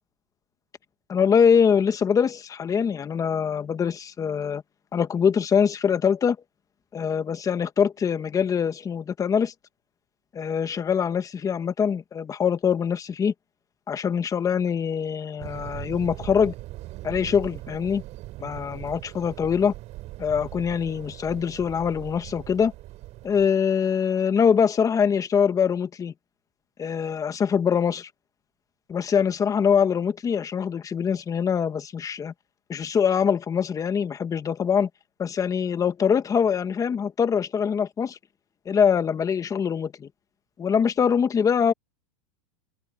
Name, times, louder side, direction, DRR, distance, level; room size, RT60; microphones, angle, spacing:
voice 1, 1.1-4.6 4.9-6.4 6.9-9.5 10.3-13.3 13.9-16.5 17.0-18.0 18.4-19.7 20.2-22.7 23.2-26.1 26.8-28.1 28.9-32.3 32.7-34.9 35.2-38.2 38.6-40.1 40.6-41.7, left 7 dB, 20° left, 1.4 m, -23 dB
sound 1, 15.4-23.5, right 17 dB, 45° right, 6.0 m, -40 dB
supercardioid pair, 125°, 17 cm